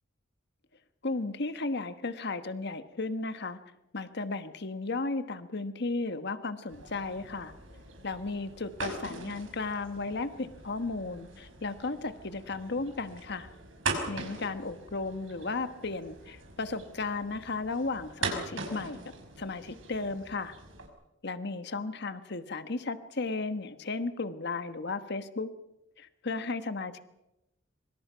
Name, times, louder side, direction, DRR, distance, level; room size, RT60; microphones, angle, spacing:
voice 1, 1.0-3.6 3.9-7.5 8.0-13.5 14.1-19.0 19.4-20.5 21.2-25.5 26.0-27.0, left 3 dB, 60° left, 10 dB, 1.3 m, -34 dB
sound 1, 6.7-20.9, right 3 dB, 85° right, 5.5 m, -41 dB
25.0 x 24.5 x 5.7 m, 0.92 s
head